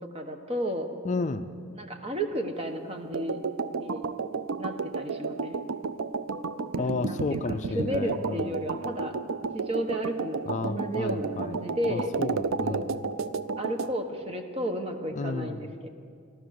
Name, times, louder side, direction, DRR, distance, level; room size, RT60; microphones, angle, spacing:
voice 1, 0.0-0.9 1.7-3.4 3.8-4.0 4.6-5.6 6.7-7.4 7.7-9.1 9.5-12.1 12.7-12.9 13.6-15.9, equal, 30° right, 5 dB, 1.2 m, -33 dB
voice 2, 1.0-1.5 6.8-8.7 10.5-11.6 11.9-13.1 15.1-15.7, left 3 dB, 35° left, 8 dB, 0.4 m, -32 dB
sound 1, 3.1-13.9, right 4 dB, 75° right, 0.5 m, -32 dB
15.5 x 13.0 x 6.5 m, 2.2 s
head